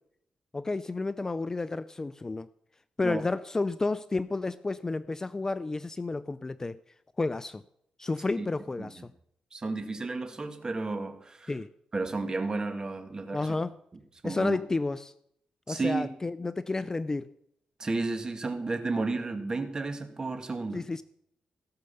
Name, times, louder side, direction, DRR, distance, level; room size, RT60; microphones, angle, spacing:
voice 1, 0.5-2.5 3.0-6.8 7.2-7.6 8.0-9.1 11.5-11.7 13.3-13.8 14.2-15.1 15.7-17.3 20.7-21.0, left 3 dB, 20° left, 15 dB, 0.4 m, -31 dB
voice 2, 9.5-11.5 11.9-13.4 14.2-14.6 15.7-16.1 17.8-20.8, right 3 dB, 30° right, 6 dB, 1.9 m, -32 dB
16.5 x 6.5 x 6.9 m, 0.73 s
cardioid pair, 95°, 2 cm